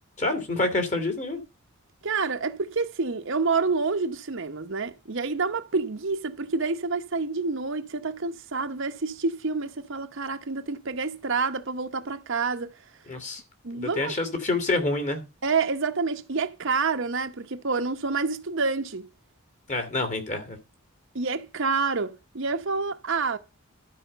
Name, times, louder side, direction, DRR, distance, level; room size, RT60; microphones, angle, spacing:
voice 1, 0.2-1.4 13.1-13.4 13.7-15.2 19.7-20.6, left 2 dB, 35° left, 2.4 m, -27 dB
voice 2, 2.0-12.7 13.6-14.2 15.4-19.1 21.1-23.4, right 4 dB, 60° right, 0.9 m, -28 dB
12.5 x 5.0 x 6.7 m
head